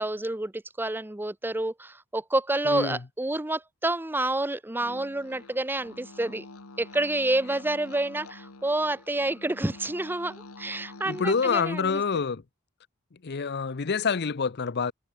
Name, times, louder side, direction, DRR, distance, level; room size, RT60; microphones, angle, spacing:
voice 1, 0.0-6.4 6.8-12.0, right 2 dB, 10° right, 0.7 m, -29 dB
voice 2, 2.6-3.0 11.1-12.4 13.2-14.9, left 5 dB, 50° left, 0.7 m, -27 dB
sound 1, 4.8-11.6, left 3 dB, 90° left, 1.8 m, -47 dB
head